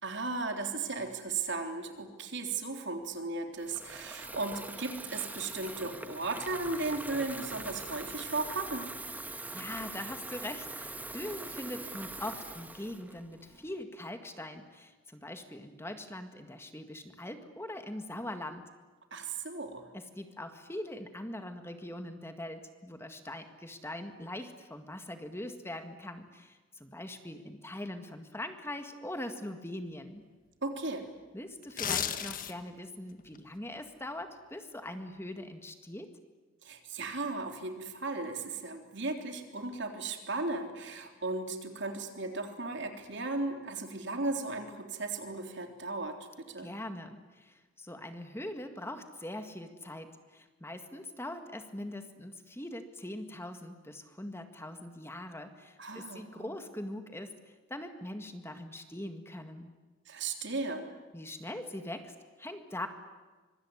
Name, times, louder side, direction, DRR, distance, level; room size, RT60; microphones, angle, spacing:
voice 1, 0.0-8.9 19.1-19.9 30.6-31.1 36.6-46.7 55.8-56.5 60.1-60.9, right 3 dB, 60° right, 5 dB, 3.6 m, -36 dB
Water tap faucet / Fill (with liquid), 3.6-13.8, right 2 dB, 10° right, 1.3 m, -43 dB
voice 2, 9.3-18.7 19.9-30.2 31.3-36.1 46.6-59.8 61.1-62.9, left 1 dB, 10° left, 7 dB, 1.8 m, -42 dB
sound 1, 31.6-32.8 33.2-33.4, left 8 dB, 45° left, 1.6 m, -33 dB
25.0 x 24.5 x 9.8 m, 1.3 s
head